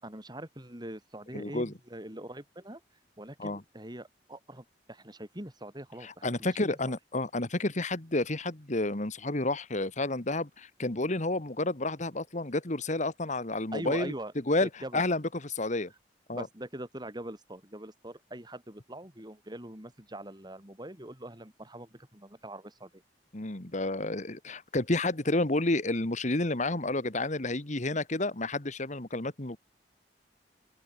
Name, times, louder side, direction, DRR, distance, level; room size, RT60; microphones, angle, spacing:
voice 1, 0.0-2.8 3.2-6.8 13.7-14.3 14.6-15.0 16.3-23.0, right 1 dB, 25° right, 6.7 m, -43 dB
voice 2, 1.3-1.7 3.4-3.6 6.0-14.1 14.5-15.9 16.3-16.5 23.3-29.6, left 2 dB, 45° left, 2.0 m, -30 dB
open air
head